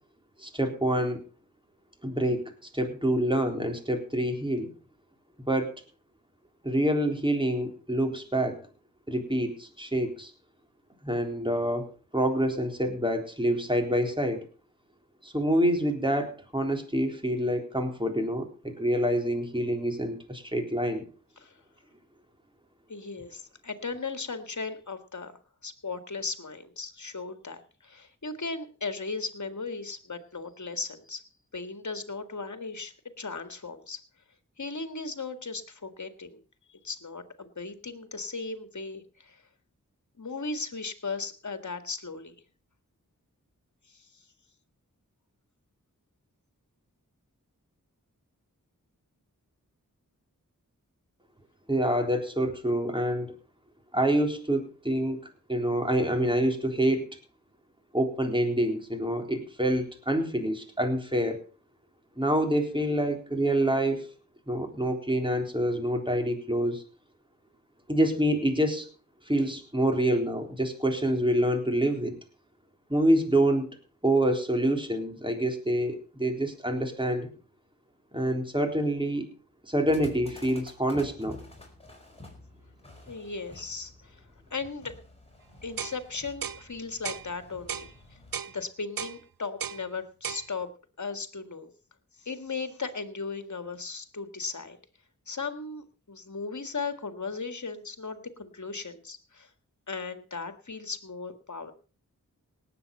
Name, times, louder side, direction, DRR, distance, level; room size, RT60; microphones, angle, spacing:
voice 1, 0.4-1.2 2.0-2.4 2.7-4.7 5.5-5.8 6.6-8.6 9.1-10.3 11.0-11.9 12.1-14.4 15.2-21.1 51.7-53.3 53.9-55.2 55.5-57.1 57.9-61.4 62.2-64.1 64.5-66.8 67.9-68.9 69.3-72.2 72.9-73.8 74.0-77.3 78.1-79.3 79.6-81.4, right 1 dB, 15° right, 3 dB, 3.9 m, -27 dB
voice 2, 22.9-31.2 31.5-34.0 34.6-36.4 36.7-39.4 40.2-42.4 43.9-44.2 83.1-84.2 84.5-85.0 85.6-88.2 88.5-90.7 91.0-91.7 92.2-94.8 95.3-99.5 99.9-101.7, left 4 dB, 55° left, 9 dB, 1.9 m, -37 dB
sound 1, 79.9-88.4, left 2 dB, 15° left, 4.9 m, -50 dB
sound 2, 85.8-86.0 86.4-86.6 87.0-87.3 87.7-87.9 88.3-88.5 89.0-89.2 89.6-89.8 90.2-90.4, right 7 dB, 85° right, 0.7 m, -34 dB
18.5 x 8.3 x 5.5 m, 0.38 s
wide cardioid pair, 50°, 34 cm